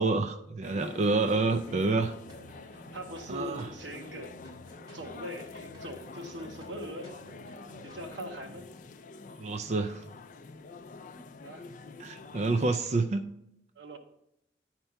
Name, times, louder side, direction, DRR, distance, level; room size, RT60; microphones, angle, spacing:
voice 1, 0.0-2.1 3.3-3.7 9.4-10.0 12.0-13.3, right 3 dB, 40° right, 6 dB, 0.4 m, -28 dB
sound 1, 0.6-12.8, left 3 dB, 45° left, 0.4 m, -47 dB
sound 2, 1.5-8.5, equal, 20° right, 3.4 m, -53 dB
voice 2, 2.9-4.4 4.9-7.1 7.8-8.7 11.4-11.6 13.8-14.0, equal, 85° right, 6 dB, 0.9 m, -41 dB
10.0 x 4.4 x 5.6 m, 0.82 s
head